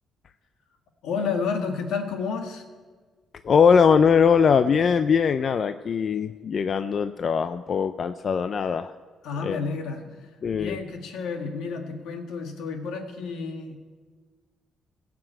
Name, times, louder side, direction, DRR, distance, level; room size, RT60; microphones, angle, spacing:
voice 1, 1.0-2.6 9.2-13.8, left 5 dB, 85° left, 4 dB, 1.7 m, -31 dB
voice 2, 3.4-8.9 9.4-9.6 10.4-10.8, left 6 dB, 50° left, 11 dB, 0.4 m, -21 dB
17.0 x 6.0 x 8.8 m, 1.5 s
cardioid pair, 90°, 0 cm